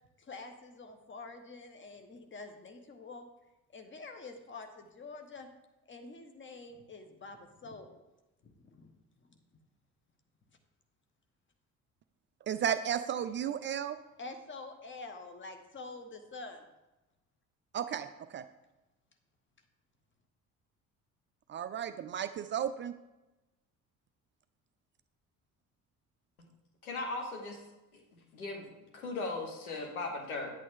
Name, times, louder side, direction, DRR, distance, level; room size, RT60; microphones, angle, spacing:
voice 1, 0.2-3.2 3.7-5.5 5.9-7.9 8.4-8.9 14.2-16.6 18.0-18.1, left 3 dB, 25° left, 6 dB, 1.3 m, -47 dB
voice 2, 12.5-14.0 17.7-18.4 21.5-22.9, right 9 dB, 30° right, 11 dB, 0.4 m, -34 dB
voice 3, 26.8-27.6 27.9-28.7 28.9-30.5, left 3 dB, 80° left, 1 dB, 1.5 m, -38 dB
9.1 x 8.4 x 3.6 m, 1.0 s
figure-of-eight pair, 50°, 43 cm